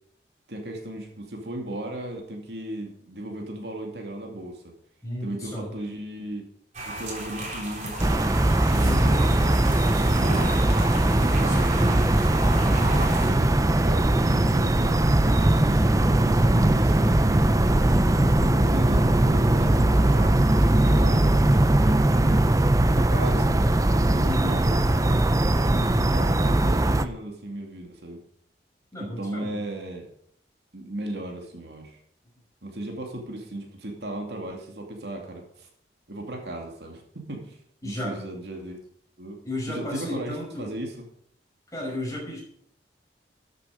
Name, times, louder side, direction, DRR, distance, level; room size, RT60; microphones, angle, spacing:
voice 1, 0.5-4.7 5.2-6.5 6.9-8.3 8.6-10.6 11.1-12.1 12.6-14.9 15.2-17.5 18.4-22.4 22.8-23.7 24.1-25.3 26.1-28.2 29.0-30.1 30.7-32.0 32.6-35.7 36.1-38.8 39.2-39.4 39.7-41.0, right 1 dB, 75° right, 1 dB, 2.6 m, -36 dB
voice 2, 5.0-5.7 8.8-9.2 11.4-11.9 24.2-24.5 28.9-29.6 37.8-38.1 39.4-40.7 41.7-42.4, left 1 dB, 20° left, -3 dB, 5.5 m, -33 dB
sound 1, 6.7-13.3, right 1 dB, 40° right, 3.8 m, -34 dB
sound 2, 8.0-27.1, right 1 dB, 20° right, 0.5 m, -20 dB
13.0 x 8.3 x 5.1 m, 0.65 s
head